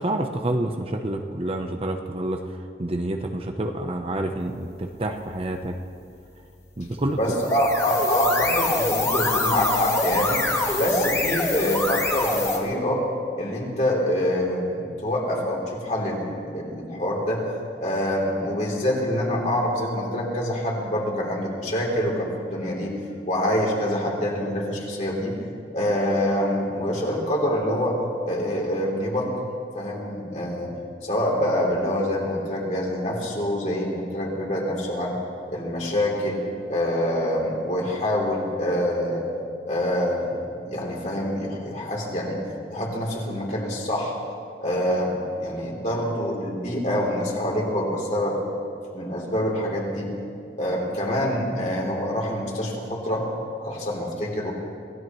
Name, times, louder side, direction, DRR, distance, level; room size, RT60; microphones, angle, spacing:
voice 1, 0.0-5.7 6.8-7.2, right 1 dB, 30° right, 5 dB, 0.7 m, -28 dB
voice 2, 7.2-10.4 10.7-13.0 13.4-17.4 17.8-22.9 23.2-25.4 25.7-28.0 28.2-29.3 29.7-30.7 31.0-35.2 35.5-36.4 36.7-39.2 39.7-42.4 42.7-44.1 44.6-48.4 48.9-50.1 50.6-53.3 53.6-54.5, equal, 40° left, -2 dB, 3.2 m, -26 dB
sound 1, 7.3-12.6, left 2 dB, 15° left, 1.5 m, -24 dB
27.0 x 16.5 x 3.1 m, 2.4 s
head